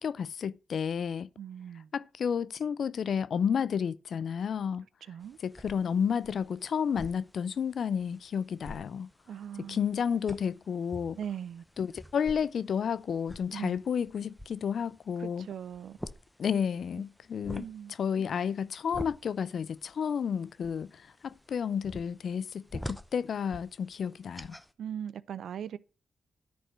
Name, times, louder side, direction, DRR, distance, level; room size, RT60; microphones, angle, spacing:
voice 1, 0.0-1.3 1.9-4.9 5.4-9.1 9.6-11.2 11.8-15.5 16.4-17.7 18.0-24.6, left 7 dB, 70° left, 0.4 m, -31 dB
voice 2, 1.4-1.9 5.1-5.4 9.3-9.9 11.2-11.6 13.5-13.8 15.2-16.0 17.5-17.9 24.8-25.8, right 9 dB, 80° right, 0.5 m, -39 dB
sound 1, 5.2-24.7, equal, 5° left, 0.7 m, -48 dB
10.0 x 4.4 x 7.2 m
cardioid pair, 65°, 0 cm